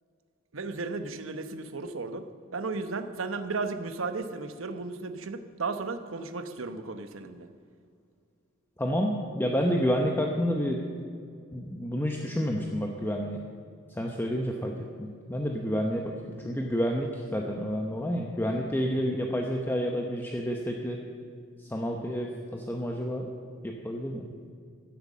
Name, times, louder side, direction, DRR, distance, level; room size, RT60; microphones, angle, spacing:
voice 1, 0.5-2.3 2.5-7.5, right 3 dB, 70° right, 9 dB, 0.9 m, -34 dB
voice 2, 8.8-10.8 11.5-13.4 14.0-21.0 21.7-23.3 23.6-24.3, equal, 10° left, 1 dB, 0.9 m, -29 dB
16.0 x 8.0 x 7.4 m, 2.3 s
head